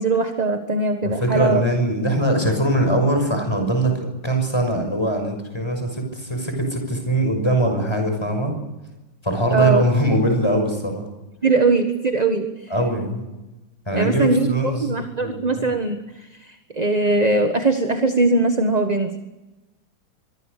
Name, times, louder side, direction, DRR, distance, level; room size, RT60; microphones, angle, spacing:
voice 1, 0.0-1.6 9.5-9.8 11.4-12.5 13.9-16.0 16.4-19.1, right 3 dB, 25° right, 6 dB, 1.3 m, -20 dB
voice 2, 1.0-3.9 4.2-8.5 9.2-11.0 12.7-13.2 13.9-15.7, right 1 dB, 10° left, 4 dB, 6.1 m, -22 dB
24.5 x 23.0 x 6.7 m, 1.0 s
omnidirectional pair, 2.2 m